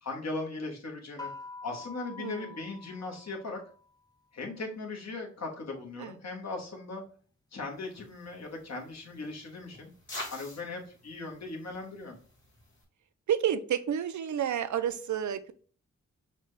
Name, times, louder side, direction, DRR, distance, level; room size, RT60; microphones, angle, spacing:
voice 1, 0.0-1.3 1.6-3.6 4.3-7.0 7.5-9.9 10.3-12.2, left 3 dB, 65° left, 0 dB, 1.2 m, -38 dB
sound 1, 1.2-3.9, left 3 dB, 15° left, 0.3 m, -46 dB
voice 2, 2.2-2.6 6.0-6.1 13.3-15.5, right 9 dB, 75° right, 11 dB, 0.5 m, -30 dB
sound 2, 7.7-12.8, left 2 dB, 40° left, 1.7 m, -47 dB
5.8 x 2.2 x 3.2 m, 0.43 s
wide cardioid pair, 80°, 29 cm